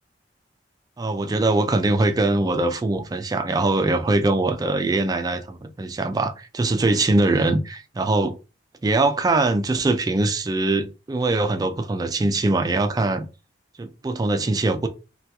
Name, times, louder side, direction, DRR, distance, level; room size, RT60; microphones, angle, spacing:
voice 1, 1.0-8.4 8.8-13.3 13.8-14.9, right 2 dB, 20° right, 0.3 m, -22 dB
3.4 x 2.3 x 2.8 m
head